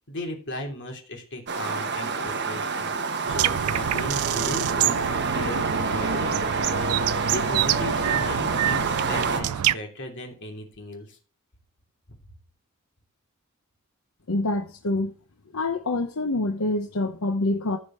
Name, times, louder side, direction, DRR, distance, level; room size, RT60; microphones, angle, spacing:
voice 1, 0.1-11.2, left 1 dB, 55° left, 3.0 m, -37 dB
sound 1, 1.5-9.4, right 4 dB, 55° right, 1.4 m, -27 dB
sound 2, 3.3-9.7, right 12 dB, 90° right, 0.4 m, -27 dB
voice 2, 14.3-15.1 15.5-17.8, left 2 dB, 80° left, 1.0 m, -26 dB
15.0 x 5.2 x 4.5 m
head